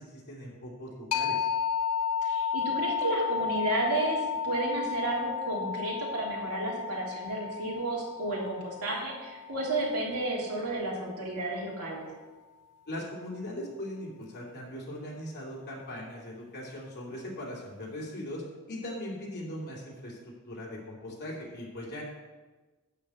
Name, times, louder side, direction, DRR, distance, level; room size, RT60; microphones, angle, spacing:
voice 1, 0.0-1.5 12.9-18.4 18.7-22.0, left 1 dB, 50° left, -3 dB, 2.9 m, -40 dB
sound 1, 1.1-10.5, left 7 dB, 90° left, 0.5 m, -33 dB
voice 2, 2.2-12.1, right 2 dB, 85° right, -4 dB, 3.2 m, -32 dB
11.5 x 4.4 x 8.2 m, 1.3 s
head